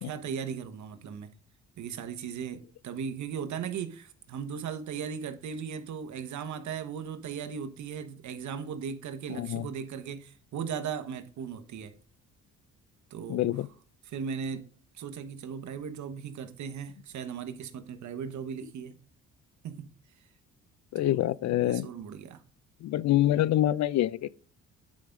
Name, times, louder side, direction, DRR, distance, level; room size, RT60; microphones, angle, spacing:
voice 1, 0.0-1.3 1.8-11.9 13.1-13.5 14.1-14.7 14.9-19.0 19.6-19.9 21.6-22.4, right 7 dB, 70° right, 1.2 m, -37 dB
voice 2, 9.4-9.7 13.3-13.7 20.9-21.9 22.8-24.3, left 13 dB, 65° left, 0.5 m, -26 dB
9.5 x 5.2 x 3.6 m
cardioid pair, 90°, 30 cm